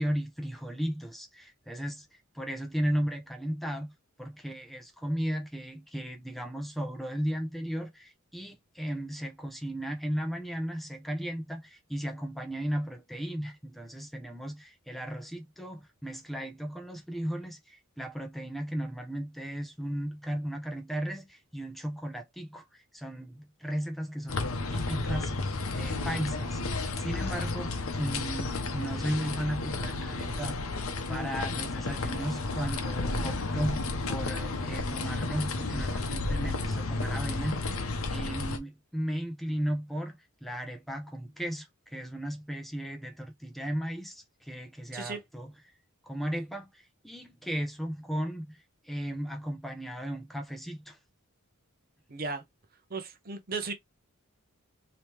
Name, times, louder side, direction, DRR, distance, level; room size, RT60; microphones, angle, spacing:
voice 1, 0.0-2.1 2.3-3.9 4.2-24.4 24.7-25.3 25.7-30.6 31.1-37.8 38.1-45.5 46.0-46.7 47.0-51.0, equal, ahead, 0.6 m, -35 dB
sound 1, 24.3-38.6, left 3 dB, 70° left, 0.7 m, -32 dB
voice 2, 52.1-52.4 52.9-53.7, right 4 dB, 40° right, 0.7 m, -35 dB
3.3 x 2.9 x 3.1 m
head